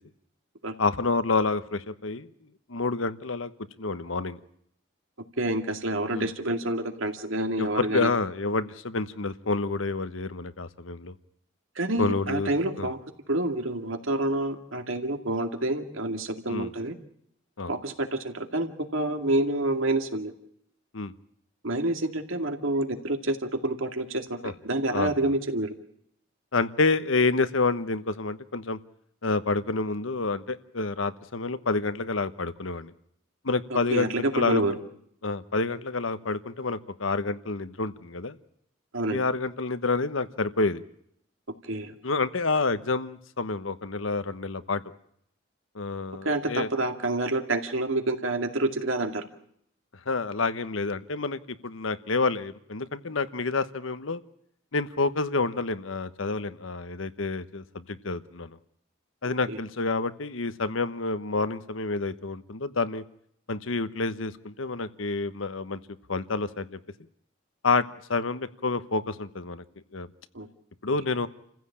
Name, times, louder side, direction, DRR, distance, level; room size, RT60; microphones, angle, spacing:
voice 1, 0.8-2.3 2.7-3.5 3.8-4.4 6.1-6.3 7.6-11.1 12.0-12.5 12.8-12.9 16.5-16.7 17.6-17.7 20.9-21.1 24.4-24.5 24.9-25.1 26.5-28.8 29.2-32.9 33.4-34.1 34.3-34.6 35.2-38.4 39.1-40.8 42.0-44.8 45.7-46.7 50.1-54.2 54.7-58.6 59.2-63.0 63.5-65.8 66.1-66.8 67.6-69.6 69.9-70.1 70.8-71.3, left 3 dB, 85° left, 13 dB, 1.1 m, -28 dB
voice 2, 5.4-8.1 11.8-13.0 13.3-16.9 17.7-20.3 21.6-25.7 33.7-34.7 38.9-39.2 41.6-41.9 46.2-49.3 59.5-59.6 70.3-70.5, right 2 dB, 90° right, 6 dB, 2.3 m, -28 dB
28.5 x 15.5 x 8.6 m, 0.73 s
head